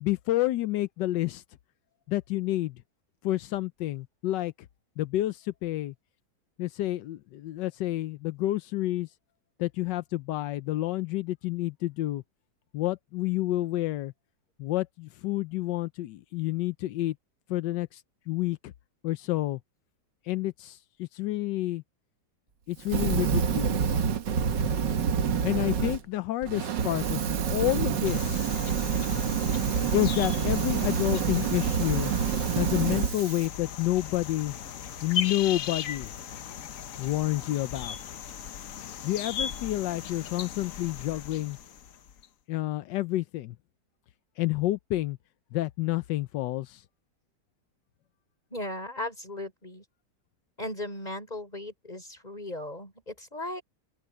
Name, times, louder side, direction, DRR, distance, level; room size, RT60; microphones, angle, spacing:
voice 1, 0.0-1.4 2.1-2.8 3.2-4.5 5.0-5.9 6.6-9.1 9.6-12.2 12.7-14.1 14.6-17.2 17.5-18.7 19.0-19.6 20.2-21.8 22.7-24.1 25.4-28.5 29.9-32.1 32.6-34.5 35.0-36.1 37.0-38.0 39.0-41.6 42.5-43.6 44.4-45.2 45.5-46.8, left 16 dB, 85° left, 1.3 m, -29 dB
Fire, 22.8-26.0 26.4-33.5, right 7 dB, 90° right, 2.0 m, -27 dB
sound 1, 28.0-42.3, left 8 dB, 55° left, 1.1 m, -38 dB
voice 2, 48.5-49.8 50.6-53.6, left 1 dB, 25° left, 6.1 m, -37 dB
open air
omnidirectional pair, 1.8 m